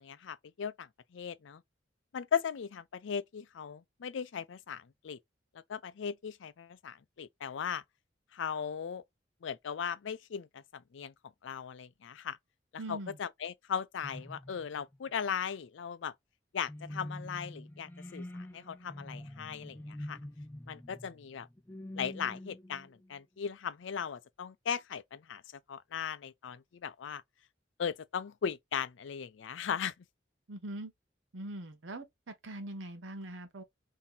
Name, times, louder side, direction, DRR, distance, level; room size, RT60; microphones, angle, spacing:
voice 1, 0.0-1.6 2.1-5.2 5.7-7.8 8.3-9.0 9.4-11.1 11.4-12.4 12.7-16.1 16.5-20.2 20.7-21.5 22.0-25.4 25.7-27.2 27.8-29.9, left 7 dB, 85° left, 0.4 m, -38 dB
voice 2, 12.8-13.2 30.5-30.9 31.3-33.6, right 1 dB, 85° right, 0.8 m, -42 dB
sound 1, 14.0-15.1 16.7-23.2, left 1 dB, 10° left, 0.3 m, -45 dB
2.8 x 2.7 x 3.8 m
head